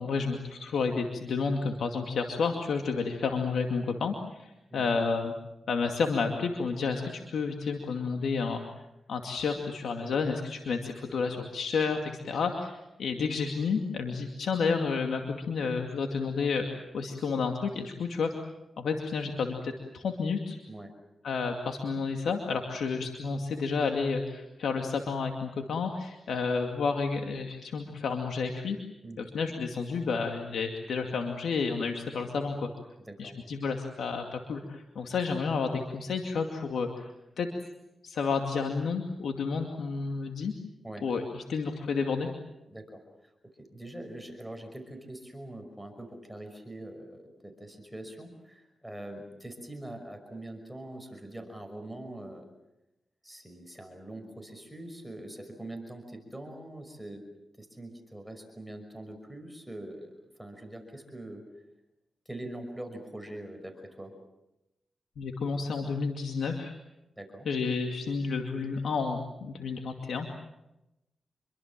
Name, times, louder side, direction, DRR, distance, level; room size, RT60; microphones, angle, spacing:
voice 1, 0.0-5.3 5.7-8.6 9.1-15.2 15.5-18.3 18.8-20.6 21.2-28.8 29.2-32.7 33.2-37.1 37.4-37.5 38.0-40.5 41.0-42.3 65.2-66.7 67.5-70.3, left 5 dB, 80° left, 3 dB, 2.3 m, -31 dB
voice 2, 42.7-43.3 43.6-52.5 53.2-57.2 57.6-61.4 62.3-64.1 67.2-67.5, right 1 dB, 5° right, 4 dB, 5.7 m, -43 dB
27.5 x 23.5 x 7.5 m, 0.92 s
cardioid pair, 65°, 0 cm